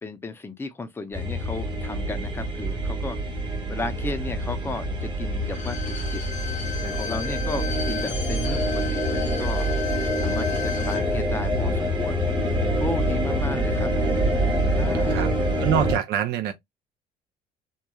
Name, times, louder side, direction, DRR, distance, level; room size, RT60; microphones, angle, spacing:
voice 1, 0.0-3.2 3.7-6.2 6.8-9.8 10.2-12.3 12.8-13.9 14.8-15.4, left 3 dB, 15° left, 0.5 m, -34 dB
sound 1, 1.1-16.0, right 1 dB, 30° right, 1.1 m, -26 dB
Bowed string instrument, 5.4-11.1 11.4-11.5, left 8 dB, 50° left, 0.7 m, -35 dB
voice 2, 15.6-16.5, right 9 dB, 75° right, 0.5 m, -25 dB
2.9 x 2.3 x 2.2 m
cardioid pair, 110°, 17 cm